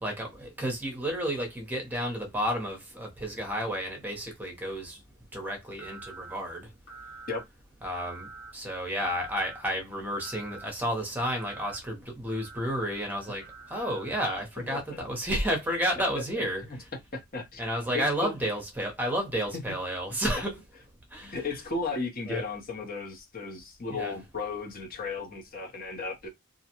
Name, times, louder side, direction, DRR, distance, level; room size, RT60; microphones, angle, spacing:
voice 1, 0.0-5.0 5.3-6.7 7.8-8.3 8.5-13.4 13.7-16.6 17.6-20.6 21.1-21.4 22.3-22.4 23.9-24.2, equal, 10° right, 0.8 m, -31 dB
sound 1, 5.8-6.3 6.9-7.4 7.9-8.5 9.0-9.6 10.1-10.7 11.2-11.8 12.3-14.2, right 3 dB, 65° left, 1.2 m, -46 dB
voice 2, 14.7-15.0 16.6-16.8 17.1-17.6 17.9-18.3 21.2-26.3, left 4 dB, 45° left, 0.8 m, -35 dB
2.5 x 2.1 x 2.9 m
head